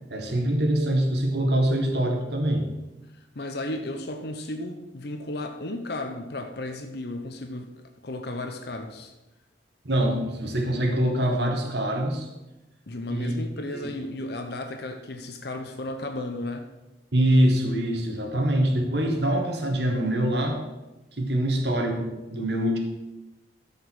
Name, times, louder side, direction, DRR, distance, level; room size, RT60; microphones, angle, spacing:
voice 1, 0.1-2.7 9.8-12.3 13.1-13.4 13.7-13.9 17.1-20.7 21.1-22.8, right 1 dB, 65° right, 3 dB, 1.9 m, -24 dB
voice 2, 3.1-7.7 8.0-9.1 12.9-16.7, left 1 dB, 60° left, 5 dB, 0.9 m, -34 dB
13.5 x 5.4 x 6.3 m, 1.0 s
head